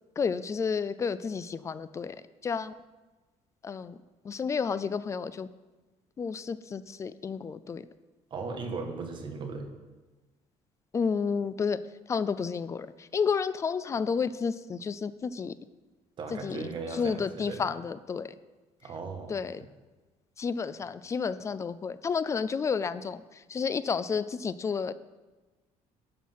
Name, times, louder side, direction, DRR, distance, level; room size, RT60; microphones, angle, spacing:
voice 1, 0.2-2.2 2.4-2.7 3.6-4.0 4.3-5.5 6.2-7.8 10.9-11.8 12.1-12.9 13.1-15.5 16.3-16.6 17.0-18.3 19.3-19.6 20.4-23.2 23.5-24.9, left 5 dB, 25° left, 15 dB, 0.3 m, -31 dB
voice 2, 8.3-9.7 16.2-17.7 18.8-19.3, right 4 dB, 40° right, 3 dB, 1.4 m, -37 dB
10.5 x 6.0 x 5.6 m, 1.2 s
cardioid pair, 155°, 13 cm